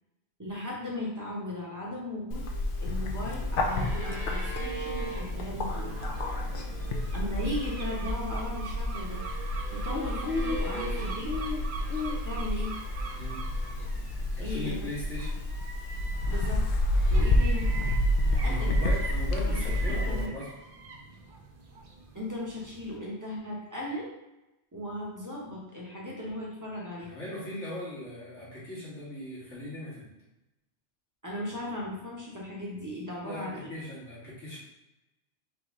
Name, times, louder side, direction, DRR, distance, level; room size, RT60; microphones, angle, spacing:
voice 1, 0.4-2.5 2.8-6.0 7.1-9.2 9.7-11.3 12.2-12.7 14.4-14.9 16.3-16.6 17.1-17.7 18.3-18.7 19.5-20.3 22.1-24.1 24.7-27.1 31.2-33.7, left 1 dB, 15° right, -5 dB, 0.8 m, -37 dB
Bird, 2.3-20.3, left 1 dB, 60° left, 0.6 m, -29 dB
sound 1, 2.4-14.1 14.4-15.3 16.0-17.8 18.8-18.9, right 2 dB, 45° right, 1.3 m, -44 dB
sound 2, 3.4-23.0, right 4 dB, 65° right, 0.3 m, -44 dB
voice 2, 14.4-15.4 18.4-20.5 27.0-30.1 33.2-34.6, left 1 dB, 75° left, -9 dB, 2.0 m, -39 dB
3.9 x 2.9 x 3.6 m, 0.95 s
omnidirectional pair, 1.2 m